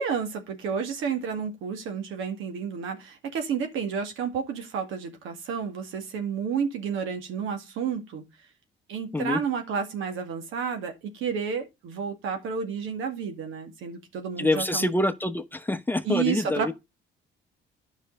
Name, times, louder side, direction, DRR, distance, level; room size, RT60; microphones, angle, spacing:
voice 1, 0.0-8.2 8.9-14.9 16.0-16.7, right 6 dB, 90° right, 2.1 m, -31 dB
voice 2, 14.4-16.7, left 1 dB, 10° left, 0.9 m, -26 dB
9.9 x 5.6 x 5.2 m
cardioid pair, 90°, 20 cm